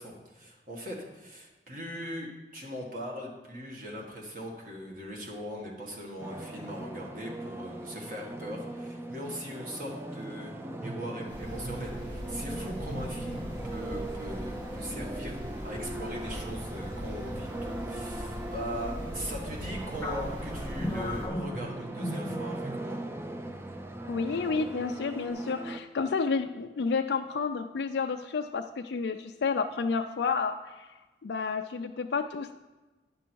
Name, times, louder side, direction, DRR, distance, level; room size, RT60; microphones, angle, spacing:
voice 1, 0.0-23.0, equal, 50° right, -1 dB, 1.6 m, -40 dB
sound 1, 6.2-25.8, right 1 dB, 15° right, 0.4 m, -39 dB
sound 2, 11.3-21.3, equal, 75° right, 1.9 m, -40 dB
sound 3, 20.0-22.9 23.2-23.4 24.0-24.5, left 1 dB, 10° left, 1.0 m, -37 dB
voice 2, 24.1-30.9 31.2-32.5, left 5 dB, 70° left, 5 dB, 0.4 m, -30 dB
9.9 x 6.1 x 4.5 m, 1.2 s
head